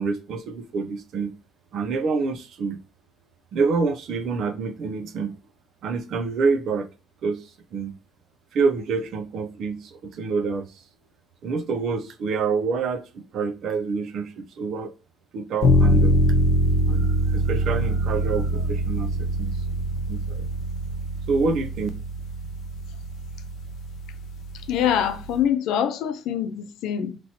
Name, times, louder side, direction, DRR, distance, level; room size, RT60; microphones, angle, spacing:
voice 1, 0.0-1.3 1.7-2.8 3.5-5.4 5.8-6.9 7.2-8.0 8.5-10.8 11.4-14.9 15.3-16.2 16.9-19.6 20.1-20.4 21.3-21.9, right 4 dB, 60° right, 0.5 m, -27 dB
sound 1, 15.6-25.4, equal, 55° left, 0.8 m, -24 dB
voice 2, 24.7-27.2, left 9 dB, 90° left, 0.5 m, -24 dB
4.0 x 3.0 x 2.8 m
cardioid pair, 165°, 0 cm